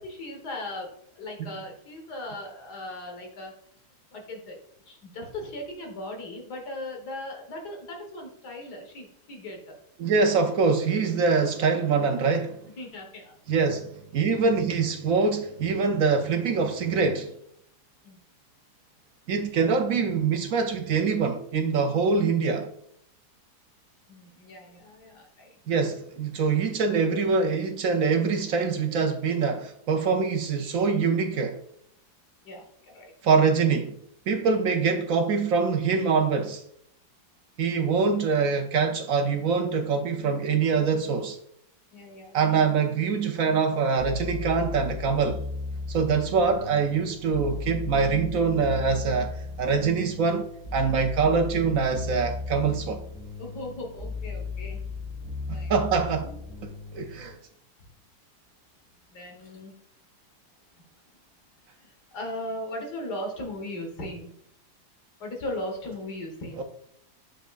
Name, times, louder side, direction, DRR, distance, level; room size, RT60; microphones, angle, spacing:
voice 1, 0.0-3.5 4.1-4.6 4.9-9.8 12.8-13.3 18.0-18.2 24.1-25.5 32.4-33.1 41.9-42.6 53.4-54.8 55.5-55.7 56.2-56.4 59.1-59.7 61.8-64.3 65.2-66.6, left 1 dB, 75° left, 2.0 m, -38 dB
voice 2, 10.0-12.6 13.5-17.3 19.3-22.7 25.7-31.6 33.2-34.0 34.3-36.6 37.6-41.4 42.3-45.4 45.9-53.0 55.7-56.3 56.6-57.4 66.6-66.7, right 5 dB, 65° right, 0.9 m, -24 dB
sound 1, 44.0-57.3, left 4 dB, 5° left, 2.0 m, -36 dB
7.2 x 5.6 x 2.4 m
omnidirectional pair, 1.7 m